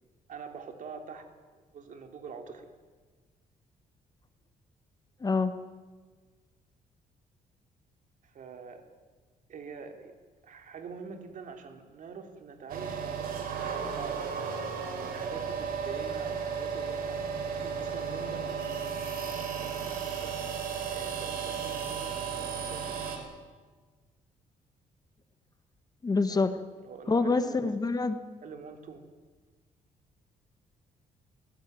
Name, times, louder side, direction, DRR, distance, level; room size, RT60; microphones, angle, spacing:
voice 1, 0.3-2.7 8.2-8.8 9.5-10.2 10.4-20.4 20.9-23.0 26.3-26.5 26.8-27.7 28.4-29.0, right 5 dB, 60° right, 6 dB, 3.1 m, -46 dB
voice 2, 5.2-5.5 26.0-26.5 27.1-28.2, left 3 dB, 25° left, 10 dB, 1.4 m, -26 dB
sound 1, 12.7-23.2, right 6 dB, 80° right, 4.5 m, -34 dB
21.0 x 18.0 x 9.2 m, 1.4 s
cardioid pair, 115°, 15 cm